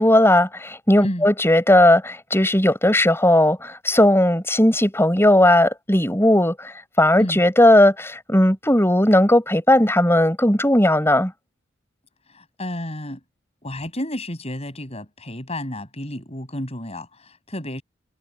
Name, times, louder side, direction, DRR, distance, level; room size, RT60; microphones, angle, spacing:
voice 1, 0.0-6.7 7.0-11.3, left 1 dB, 10° left, 6.9 m, -17 dB
voice 2, 12.3-13.2 13.6-17.8, left 1 dB, 30° left, 6.1 m, -31 dB
head